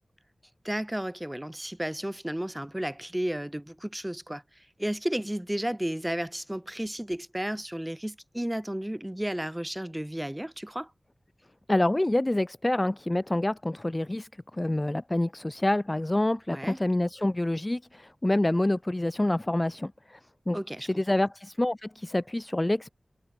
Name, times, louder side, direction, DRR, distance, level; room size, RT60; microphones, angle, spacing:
voice 1, 0.6-10.9 16.5-16.8 20.5-20.9, right 1 dB, 10° right, 7.1 m, -33 dB
voice 2, 11.7-20.2 20.5-20.6 21.0-22.9, left 1 dB, 20° left, 2.3 m, -27 dB
wide cardioid pair, 85°, 0 cm